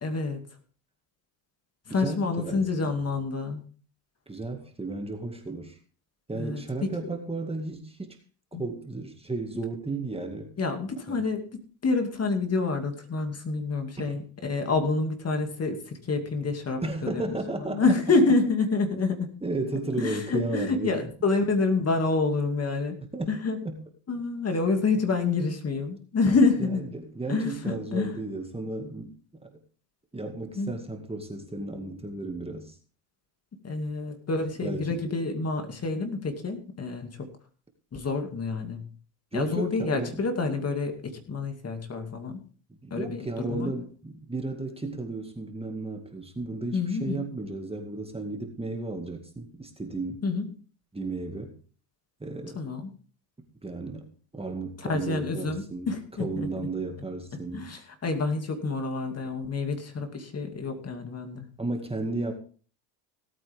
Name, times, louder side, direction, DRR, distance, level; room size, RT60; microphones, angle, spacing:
voice 1, 0.0-0.4 1.9-3.6 6.4-7.1 8.5-8.6 10.6-17.4 17.7-19.4 20.0-23.0 23.3-23.6 24.1-26.9 27.3-28.2 30.6-30.7 33.6-37.3 37.9-38.9 39.3-42.4 42.9-43.7 46.7-47.3 50.2-50.5 52.5-52.9 54.8-56.5 57.5-61.5, left 3 dB, 30° left, 6 dB, 2.4 m, -28 dB
voice 2, 1.9-3.0 4.3-5.8 6.3-8.2 8.5-10.5 11.1-11.2 14.0-14.2 16.8-17.9 19.4-21.1 23.1-23.4 23.6-23.8 26.6-29.1 29.4-29.5 30.1-32.8 34.6-35.1 39.3-40.2 42.8-50.2 50.9-51.6 52.2-52.7 53.6-55.9 56.2-57.7 61.6-62.3, right 2 dB, 10° right, 4 dB, 2.1 m, -34 dB
17.5 x 8.8 x 3.6 m, 0.40 s
supercardioid pair, 90°, 48 cm